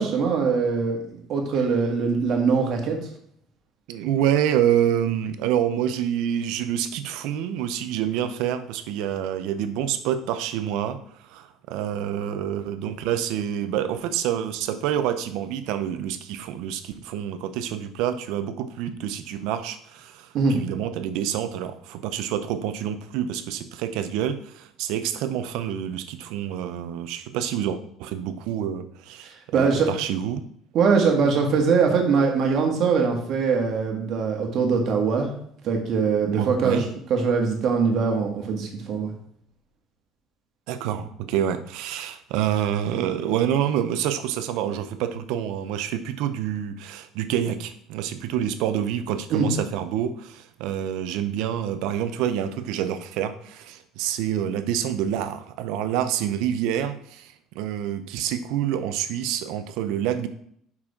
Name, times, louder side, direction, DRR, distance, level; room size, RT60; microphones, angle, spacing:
voice 1, 0.0-3.0 20.3-20.6 29.2-29.9 30.7-35.3 35.6-39.1 49.3-49.5, right 5 dB, 50° right, 2 dB, 1.7 m, -22 dB
voice 2, 3.9-30.4 36.3-36.8 40.7-60.3, right 10 dB, 80° right, 10 dB, 0.7 m, -27 dB
5.6 x 5.0 x 4.9 m, 0.67 s
cardioid pair, 145°, 0 cm